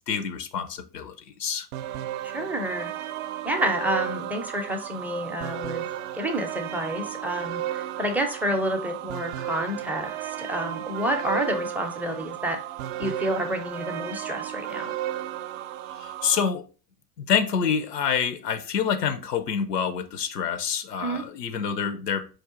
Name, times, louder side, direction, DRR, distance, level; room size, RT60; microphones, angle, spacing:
voice 1, 0.1-1.7 16.0-16.7 17.2-22.3, left 7 dB, 85° left, 0.6 m, -27 dB
sound 1, 1.7-16.5, right 12 dB, 60° right, 0.5 m, -34 dB
voice 2, 2.2-2.9 3.4-5.9 6.1-10.1 10.4-12.6 13.0-14.9 21.0-21.2, right 1 dB, 5° right, 0.4 m, -29 dB
4.7 x 2.4 x 3.6 m
figure-of-eight pair, 75°, 47 cm